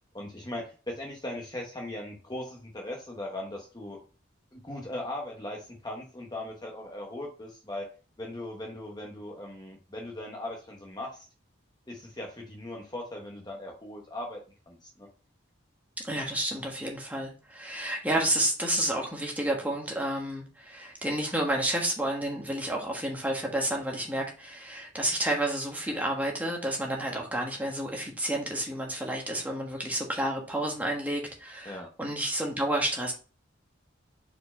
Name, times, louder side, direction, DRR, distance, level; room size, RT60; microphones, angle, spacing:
voice 1, 0.1-4.0 4.5-7.9 8.2-11.3 11.9-14.4 14.7-15.1 31.6-31.9, left 1 dB, 20° left, 0 dB, 1.0 m, -39 dB
voice 2, 16.0-33.1, right 1 dB, 10° right, -1 dB, 1.4 m, -30 dB
4.8 x 4.5 x 4.3 m, 0.35 s
head